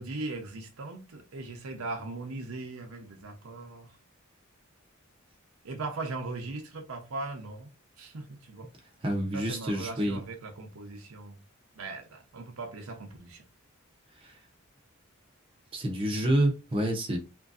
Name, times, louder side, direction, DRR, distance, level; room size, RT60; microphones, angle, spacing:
voice 1, 0.0-3.9 5.6-7.7 8.0-8.7 9.3-11.4 11.8-13.4, right 3 dB, 85° right, 0.7 m, -39 dB
voice 2, 9.0-10.2 14.2-14.3 15.7-17.2, right 1 dB, 25° right, 0.6 m, -28 dB
3.0 x 2.6 x 2.4 m
head